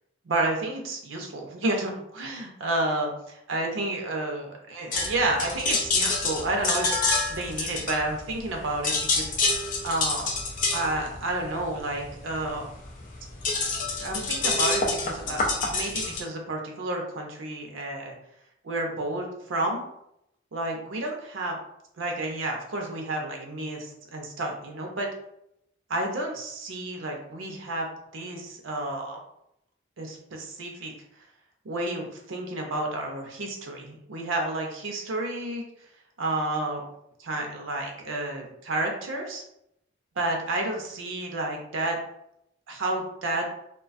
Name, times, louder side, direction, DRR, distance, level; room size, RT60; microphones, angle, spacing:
voice 1, 0.2-3.1 3.5-6.9 7.3-9.6 9.8-10.3 10.7-12.6 13.8-15.4 15.7-18.2 18.6-19.8 20.5-21.6 22.0-25.1 25.9-27.9 28.1-29.2 30.0-30.9 31.6-35.6 36.2-36.8 37.2-39.4 40.2-42.0 42.7-43.5, right 2 dB, 80° right, 2 dB, 0.5 m, -30 dB
sound 1, 4.9-8.5 8.8-16.2, left 3 dB, 40° left, 0.4 m, -27 dB
2.3 x 2.2 x 2.5 m, 0.78 s
head